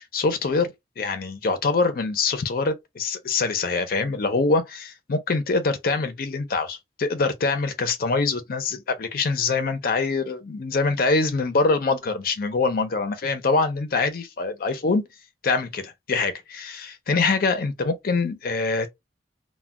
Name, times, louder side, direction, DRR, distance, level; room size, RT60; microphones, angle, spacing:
voice 1, 0.0-15.0 15.4-18.9, left 3 dB, 55° left, 0.5 m, -24 dB
2.2 x 2.1 x 3.5 m
head